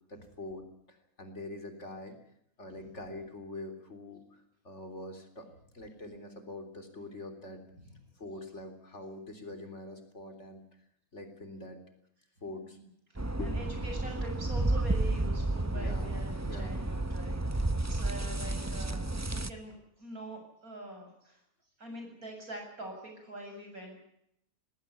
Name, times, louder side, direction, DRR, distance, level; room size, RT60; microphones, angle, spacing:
voice 1, 0.1-2.2 2.6-5.5 5.7-7.6 8.2-10.8 11.1-11.8 12.4-12.8 13.4-13.6 15.7-16.1 16.4-16.7, left 2 dB, 55° left, 6 dB, 3.9 m, -44 dB
sound 1, 13.2-19.5, right 2 dB, 15° right, 0.7 m, -31 dB
voice 2, 13.4-21.4 21.8-24.0, right 1 dB, 85° right, 3 dB, 8.4 m, -44 dB
19.5 x 18.0 x 9.7 m, 0.76 s
omnidirectional pair, 1.5 m